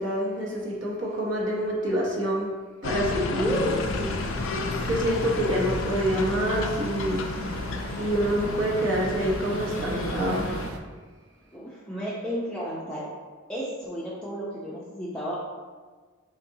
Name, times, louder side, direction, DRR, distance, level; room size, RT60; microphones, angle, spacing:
voice 1, 0.0-2.5 2.8-3.5 4.0-4.1 4.8-7.3 8.0-10.5, right 1 dB, 60° right, -3 dB, 0.8 m, -27 dB
sound 1, 2.8-10.7, left 3 dB, 70° left, 0.4 m, -31 dB
voice 2, 3.4-3.8 11.5-13.0 13.5-15.4, equal, 5° left, -8 dB, 0.4 m, -32 dB
sound 2, 3.5-10.8, right 3 dB, 80° right, 0.4 m, -38 dB
4.1 x 3.8 x 2.6 m, 1.4 s
head